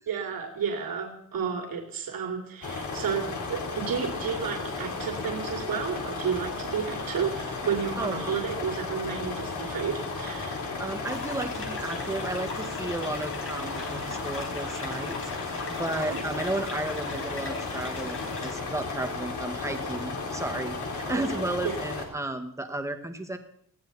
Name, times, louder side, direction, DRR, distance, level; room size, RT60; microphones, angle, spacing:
voice 1, 0.1-10.6 16.1-16.2 21.1-21.7, right 7 dB, 80° right, 2 dB, 2.9 m, -32 dB
sound 1, 2.6-22.0, left 3 dB, 55° left, 3.7 m, -34 dB
voice 2, 8.0-8.3 10.8-23.4, right 2 dB, 10° right, 6 dB, 1.6 m, -33 dB
sound 2, 11.0-18.5, left 3 dB, 40° left, 4.6 m, -41 dB
20.5 x 16.5 x 4.2 m, 0.63 s
wide cardioid pair, 180°, 34 cm